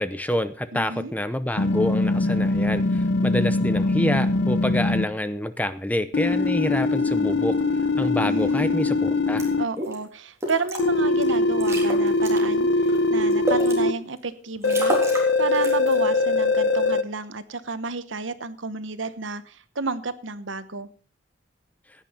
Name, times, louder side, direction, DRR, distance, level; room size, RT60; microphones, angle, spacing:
voice 1, 0.0-7.6 8.0-9.5, left 1 dB, 10° left, 12 dB, 0.6 m, -27 dB
voice 2, 0.7-1.1 8.2-8.8 9.6-12.7 13.1-15.0 15.4-20.9, right 4 dB, 90° right, 13 dB, 1.1 m, -31 dB
sound 1, 1.6-5.1 6.1-9.6 10.8-13.9 14.6-17.0, left 2 dB, 70° left, 0.9 m, -22 dB
sound 2, 9.4-9.5 9.8-10.0 10.4-10.8 11.2-11.3 11.6-12.4 12.9-13.7 14.2-14.3 14.6-15.3 15.5-16.0, right 1 dB, 15° right, 3.5 m, -29 dB
16.0 x 9.9 x 4.3 m, 0.40 s
head